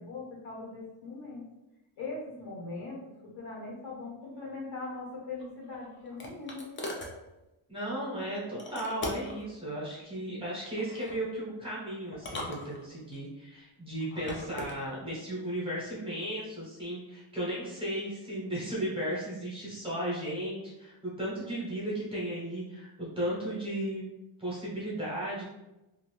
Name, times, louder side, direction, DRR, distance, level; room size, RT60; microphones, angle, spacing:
voice 1, 0.0-1.4 2.0-3.0 3.3-6.7, left 3 dB, 80° left, -4 dB, 1.5 m, -40 dB
sound 1, 5.4-7.2 8.6-9.4 10.8-11.2 12.1-13.2 14.0-14.8, left 1 dB, 25° left, 0.4 m, -40 dB
voice 2, 7.7-24.0 24.4-25.4, right 1 dB, 10° right, -7 dB, 0.8 m, -35 dB
2.6 x 2.6 x 3.1 m, 0.96 s
cardioid pair, 175°, 47 cm